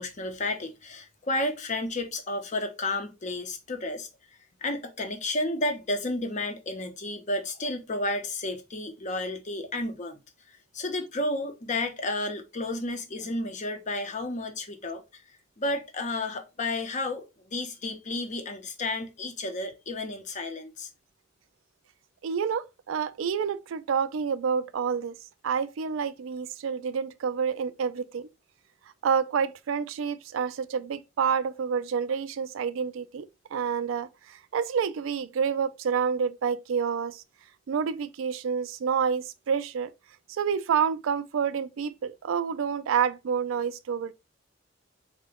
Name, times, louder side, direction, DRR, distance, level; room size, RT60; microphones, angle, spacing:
voice 1, 0.0-4.1 4.6-10.2 10.7-15.0 15.6-20.9, left 2 dB, 40° left, 0.7 m, -32 dB
voice 2, 22.2-25.1 25.4-28.3 29.0-37.2 37.7-39.9 40.3-44.1, right 6 dB, 90° right, 0.4 m, -28 dB
3.8 x 2.2 x 3.4 m
head